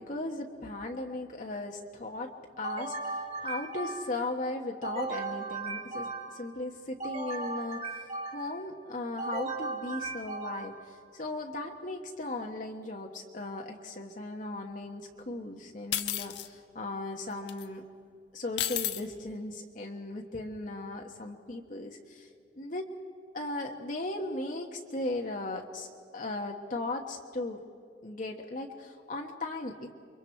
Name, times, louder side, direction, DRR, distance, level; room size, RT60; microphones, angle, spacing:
voice 1, 0.0-3.1 3.4-17.8 18.3-22.3 22.5-22.9 23.3-25.9 26.1-27.6 28.0-29.9, left 2 dB, 45° left, 1 dB, 1.3 m, -37 dB
sound 1, 2.6-4.3 4.8-6.5 7.0-8.6 9.2-10.9, right 3 dB, 40° right, 3.5 m, -37 dB
sound 2, 15.9-16.5 17.5-17.6 18.6-19.0, left 12 dB, 75° left, 1.1 m, -31 dB
29.0 x 23.5 x 4.5 m, 2.4 s
head